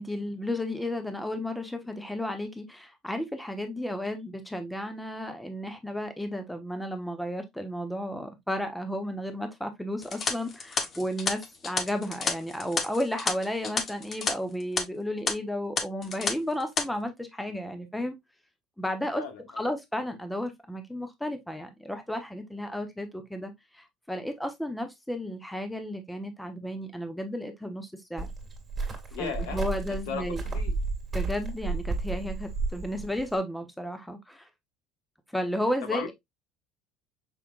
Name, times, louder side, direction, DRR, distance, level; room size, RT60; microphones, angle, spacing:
voice 1, 0.0-18.2 18.8-19.2 19.6-28.3 29.2-30.4 31.1-34.5 35.3-36.1, left 1 dB, 5° left, 1.0 m, -33 dB
sound 1, 10.0-14.3 14.6-14.8 15.3-15.4 15.8-16.3 16.6-16.8, left 4 dB, 35° left, 1.1 m, -30 dB
voice 2, 19.1-19.6 29.1-29.6 30.1-30.7 35.8-36.1, left 7 dB, 80° left, 1.6 m, -36 dB
Cricket, 28.2-33.3, right 3 dB, 20° right, 2.2 m, -32 dB
6.1 x 3.4 x 2.5 m
supercardioid pair, 110°, 0 cm